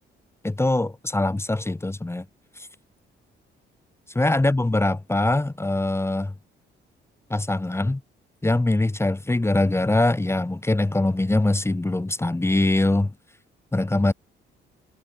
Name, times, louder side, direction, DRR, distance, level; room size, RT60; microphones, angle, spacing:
voice 1, 0.4-2.3 2.6-2.7 4.1-6.3 7.3-8.0 8.4-13.1 13.7-14.1, left 2 dB, 15° left, 2.1 m, -22 dB
cardioid pair, 90°, 20 cm